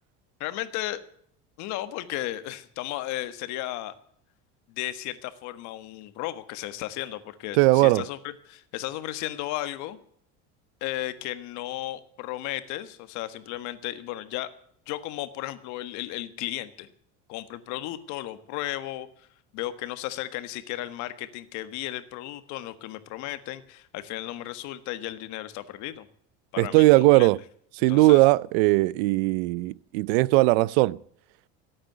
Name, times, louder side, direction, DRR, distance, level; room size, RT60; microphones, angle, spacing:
voice 1, 0.4-1.0 1.6-3.9 4.7-10.0 10.8-14.5 14.9-16.9 17.3-19.3 19.5-26.1 26.5-27.3 27.9-28.2, left 15 dB, 65° left, 1.5 m, -34 dB
voice 2, 7.6-8.0 26.6-27.4 27.8-31.0, right 20 dB, 85° right, 0.6 m, -19 dB
17.0 x 8.8 x 7.8 m
cardioid pair, 130°, 31 cm